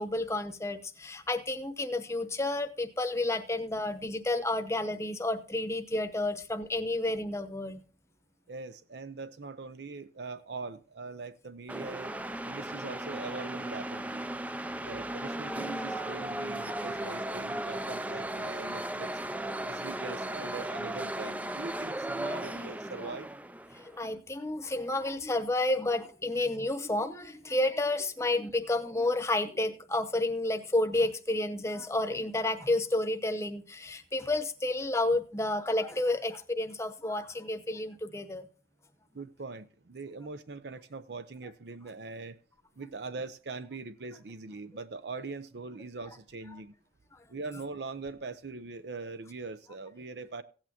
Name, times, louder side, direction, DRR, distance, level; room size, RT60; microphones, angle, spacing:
voice 1, 0.0-7.8 12.1-12.5 15.9-16.1 16.6-17.1 23.7-38.5 46.5-46.6 47.1-47.2, left 2 dB, 15° left, 0.9 m, -31 dB
voice 2, 8.5-12.1 12.5-14.3 14.8-19.1 19.7-23.3 39.1-42.4 42.8-46.7 47.3-50.4, right 3 dB, 70° right, 0.6 m, -42 dB
sound 1, 11.7-24.0, right 1 dB, 10° right, 0.4 m, -36 dB
16.5 x 8.7 x 2.9 m
head